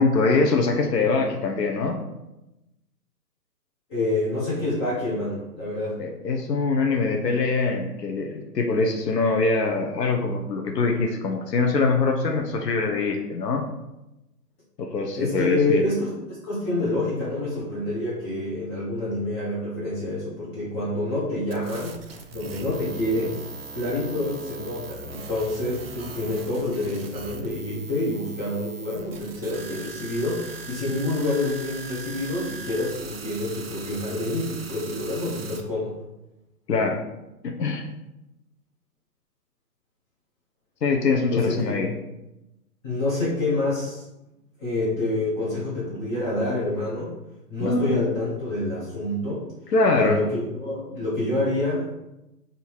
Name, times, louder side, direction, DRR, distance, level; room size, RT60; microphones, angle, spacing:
voice 1, 0.0-2.0 6.0-13.6 14.8-15.8 36.7-37.0 37.4-37.8 40.8-41.9 47.6-48.0 49.7-50.2, left 3 dB, 85° left, 3 dB, 0.8 m, -23 dB
voice 2, 3.9-6.0 15.1-23.4 23.7-36.0 41.3-41.9 42.8-44.0 44.6-47.1 47.5-49.5 49.9-51.9, left 2 dB, 15° left, -8 dB, 0.7 m, -27 dB
sound 1, 21.5-35.6, right 4 dB, 40° right, 0.4 m, -40 dB
3.7 x 2.6 x 4.4 m, 0.93 s
hypercardioid pair, 140°, 47 cm